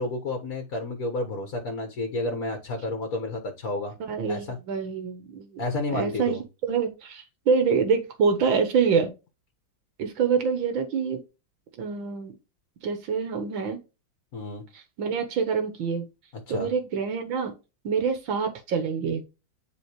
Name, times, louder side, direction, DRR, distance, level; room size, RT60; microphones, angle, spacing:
voice 1, 0.0-3.9 4.3-4.6 5.6-6.4 14.3-14.6 16.5-16.7, left 2 dB, 50° left, 4 dB, 1.7 m, -31 dB
voice 2, 4.1-5.6 5.9-9.1 10.0-11.2 11.8-12.4 12.8-13.8 14.7-16.1 16.5-17.5 17.8-19.2, right 6 dB, 85° right, 6 dB, 1.9 m, -26 dB
10.5 x 4.0 x 3.0 m, 0.27 s
omnidirectional pair, 2.1 m